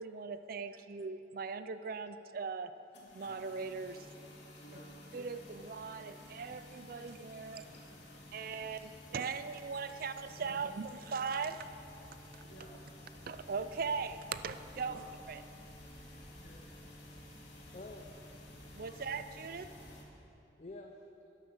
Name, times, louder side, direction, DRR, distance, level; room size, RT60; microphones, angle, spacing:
voice 1, 0.0-2.7 3.1-4.1 5.1-7.6 8.3-11.7 13.3-15.4 18.7-19.7, right 5 dB, 50° right, 11 dB, 0.4 m, -39 dB
sound 1, 2.9-20.0, left 1 dB, 80° left, 2.2 m, -53 dB
voice 2, 4.6-5.1 10.2-10.6 12.4-13.3 14.7-15.0 16.2-16.7 18.8-19.2, equal, 55° left, -5 dB, 3.1 m, -57 dB
voice 3, 7.3-7.8 8.5-8.9 9.9-10.0 17.0-18.2 19.3-19.5 20.6-21.1, left 2 dB, 35° left, 3 dB, 0.6 m, -53 dB
sound 2, 11.5-20.0, equal, 35° right, 3.5 m, -58 dB
12.0 x 10.0 x 7.0 m, 3.0 s
head